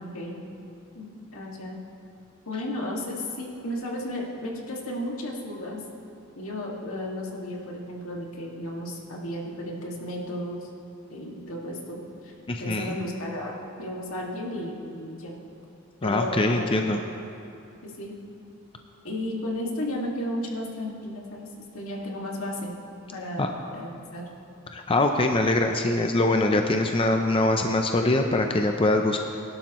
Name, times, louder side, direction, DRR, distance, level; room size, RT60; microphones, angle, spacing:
voice 1, 0.9-1.8 2.5-5.8 6.4-10.7 11.1-12.0 12.2-12.3 12.6-15.4 16.0-17.0 17.8-18.1 19.0-22.7 23.1-23.5 23.7-24.2, left 1 dB, 80° left, -2 dB, 2.1 m, -33 dB
voice 2, 12.5-13.0 16.0-17.0 23.4-23.5 24.7-29.2, left 2 dB, 25° left, 4 dB, 0.6 m, -23 dB
21.5 x 12.0 x 3.1 m, 2.6 s
head